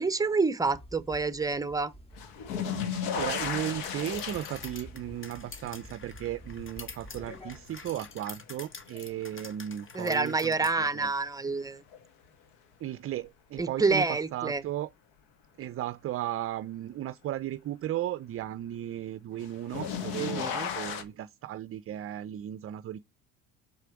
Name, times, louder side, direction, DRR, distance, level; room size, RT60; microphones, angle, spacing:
voice 1, 0.0-1.9 9.9-11.8 13.6-14.6 20.2-20.7, right 4 dB, 10° right, 0.8 m, -28 dB
sound 1, 0.6-7.9, equal, 15° left, 1.9 m, -50 dB
sound 2, 2.2-9.2 9.6-10.3 11.9-12.0 13.6-13.7 19.4-21.0, left 7 dB, 80° left, 1.4 m, -36 dB
voice 2, 2.9-11.1 12.8-14.9 15.6-23.0, right 12 dB, 40° right, 0.5 m, -36 dB
sound 3, 3.4-10.8, left 4 dB, 35° left, 1.5 m, -47 dB
6.9 x 4.9 x 4.5 m
supercardioid pair, 80°, 36 cm